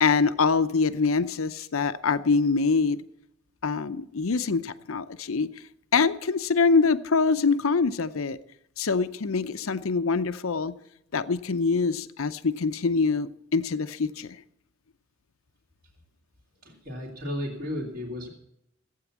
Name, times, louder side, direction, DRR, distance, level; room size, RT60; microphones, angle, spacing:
voice 1, 0.0-3.0 3.6-5.5 5.9-8.4 8.8-10.8 11.1-14.4, left 4 dB, 85° left, 13 dB, 0.7 m, -24 dB
voice 2, 16.6-18.3, equal, 50° right, -4 dB, 2.9 m, -34 dB
15.5 x 8.9 x 7.3 m, 0.79 s
head